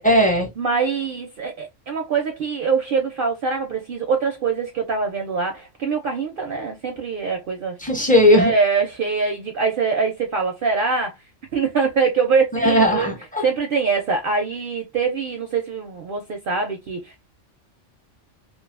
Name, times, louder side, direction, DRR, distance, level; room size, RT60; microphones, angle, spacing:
voice 1, 0.0-0.5 7.8-8.5 12.5-13.4, equal, 15° left, 0.3 m, -17 dB
voice 2, 0.6-7.8 8.3-11.2 11.5-13.1 13.4-17.2, right 5 dB, 60° right, 0.6 m, -23 dB
2.4 x 2.3 x 2.3 m
omnidirectional pair, 1.3 m